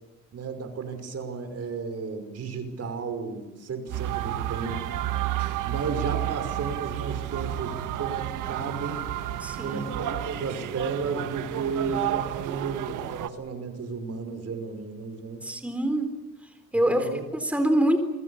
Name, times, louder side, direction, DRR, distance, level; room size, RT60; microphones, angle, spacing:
voice 1, 0.3-4.8 5.6-9.1 9.6-15.5 16.9-17.2, right 5 dB, 55° right, 8 dB, 5.4 m, -33 dB
sound 1, 3.9-13.3, right 13 dB, 85° right, 1.6 m, -31 dB
voice 2, 9.4-9.8 15.4-16.1 16.7-18.0, right 1 dB, 5° right, 7 dB, 3.8 m, -25 dB
28.0 x 24.0 x 7.2 m, 1.0 s
cardioid pair, 90°, 30 cm